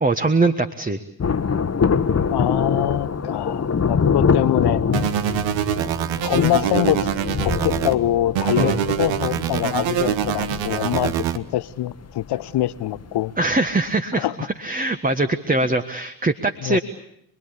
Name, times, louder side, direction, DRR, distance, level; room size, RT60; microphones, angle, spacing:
voice 1, 0.0-1.0 8.6-8.8 9.7-10.1 13.4-16.8, right 2 dB, 15° right, 1.5 m, -22 dB
Thunder, 1.2-13.2 13.4-13.5, left 5 dB, 30° left, 1.4 m, -24 dB
voice 2, 2.3-4.8 6.2-7.1 7.4-13.3 14.2-14.3 16.6-16.8, left 13 dB, 55° left, 1.0 m, -24 dB
sound 1, 4.9-7.9 8.3-11.4, right 11 dB, 65° right, 1.3 m, -24 dB
28.0 x 21.5 x 8.5 m
hypercardioid pair, 45°, 48 cm